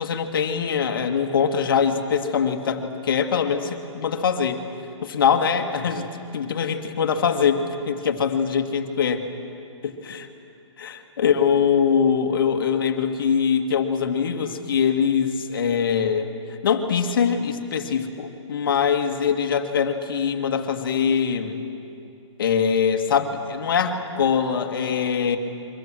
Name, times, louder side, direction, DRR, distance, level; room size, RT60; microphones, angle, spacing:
voice 1, 0.0-4.6 5.0-6.1 6.3-9.2 9.8-10.3 10.8-16.3 16.6-21.6 22.4-25.4, left 7 dB, 45° left, 5 dB, 1.9 m, -23 dB
29.5 x 24.0 x 7.6 m, 2.6 s
hypercardioid pair, 175°, 16 cm